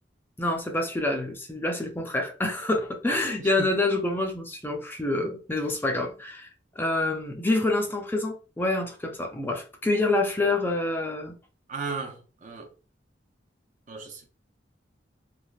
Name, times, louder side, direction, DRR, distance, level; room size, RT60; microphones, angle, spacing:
voice 1, 0.4-6.5 6.8-11.4, left 2 dB, 10° left, 0.4 m, -27 dB
voice 2, 11.7-12.7 13.9-14.3, right 4 dB, 45° right, 0.6 m, -35 dB
3.2 x 2.4 x 2.3 m
head